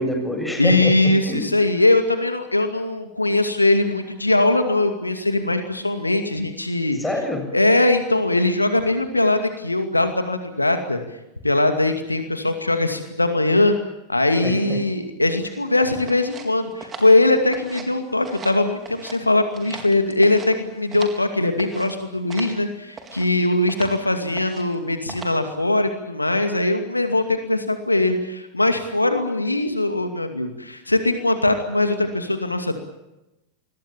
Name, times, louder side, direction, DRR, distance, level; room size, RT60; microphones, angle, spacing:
voice 1, 0.0-1.5 7.0-7.6 14.4-14.8, left 1 dB, 5° left, 4 dB, 7.3 m, -26 dB
voice 2, 0.6-7.0 7.5-11.0 11.4-13.7 14.1-32.8, left 2 dB, 85° left, 7 dB, 2.4 m, -21 dB
sound 1, 16.1-18.0 18.2-19.2 19.5-21.3 21.6-21.9 22.3-22.6 22.9-23.3 23.7-24.0 24.3-24.8 25.1-25.5, right 5 dB, 20° right, 4.1 m, -39 dB
27.5 x 22.0 x 7.2 m, 0.95 s
figure-of-eight pair, 90°, 0 cm